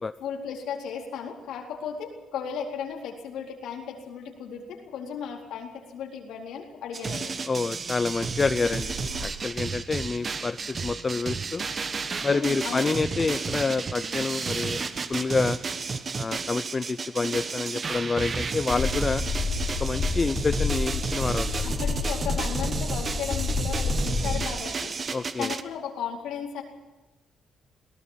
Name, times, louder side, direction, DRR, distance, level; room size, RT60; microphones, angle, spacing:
voice 1, 0.2-7.4 12.3-13.0 21.6-26.6, left 7 dB, 85° left, 0 dB, 4.1 m, -35 dB
sound 1, 6.9-25.6, right 4 dB, 40° right, 1.2 m, -32 dB
voice 2, 7.5-9.0 9.2-11.7 12.2-14.8 15.1-15.6 16.1-19.2 19.8-21.8 25.1-25.5, left 4 dB, 30° left, 11 dB, 0.6 m, -28 dB
sound 2, 7.6-15.5 16.0-16.4, right 1 dB, 55° right, 6.2 m, -47 dB
sound 3, 18.7-24.5, left 4 dB, 50° left, 2.7 m, -29 dB
21.5 x 18.0 x 7.5 m, 1.1 s
cardioid pair, 90°, 0 cm